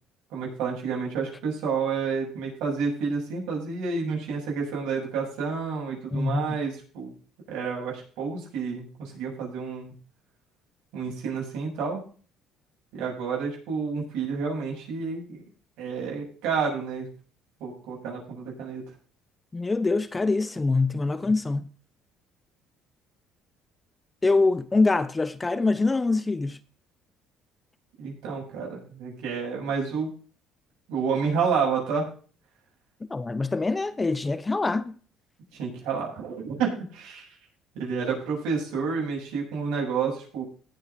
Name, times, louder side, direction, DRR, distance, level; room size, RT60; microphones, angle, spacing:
voice 1, 0.3-7.1 7.5-9.9 10.9-12.0 12.9-15.4 15.8-17.1 17.6-18.8 28.0-30.1 30.9-32.1 35.6-37.3 37.7-40.4, right 5 dB, 80° right, 7.8 m, -29 dB
voice 2, 6.1-6.6 19.5-21.6 24.2-26.6 33.1-35.0, left 3 dB, 20° left, 0.8 m, -24 dB
18.0 x 7.8 x 4.2 m
cardioid pair, 110°, 0 cm